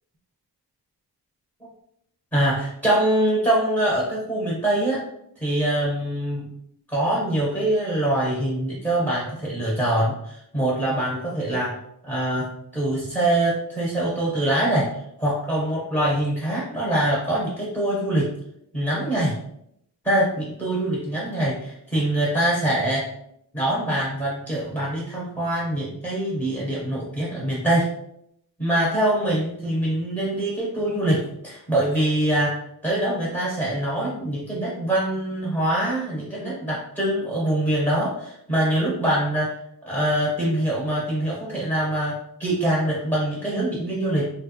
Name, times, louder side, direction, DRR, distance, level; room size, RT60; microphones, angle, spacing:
voice 1, 2.3-5.0 5.4-6.5 6.9-14.9 15.2-18.3 18.7-19.4 20.0-23.1 23.5-27.9 28.6-39.5 39.8-44.3, right 1 dB, 5° left, -6 dB, 1.1 m, -24 dB
3.3 x 2.4 x 3.0 m, 0.75 s
wide cardioid pair, 110°, 40 cm